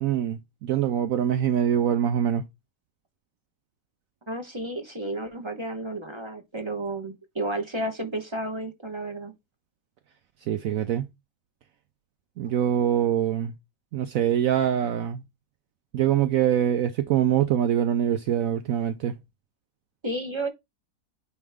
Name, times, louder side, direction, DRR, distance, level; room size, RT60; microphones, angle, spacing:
voice 1, 0.0-2.4 10.4-11.1 12.4-13.5 13.9-15.2 15.9-19.2, right 10 dB, 70° right, 0.9 m, -24 dB
voice 2, 4.3-9.3 20.0-20.5, right 1 dB, 20° right, 1.0 m, -32 dB
9.3 x 3.1 x 3.5 m
omnidirectional pair, 1.7 m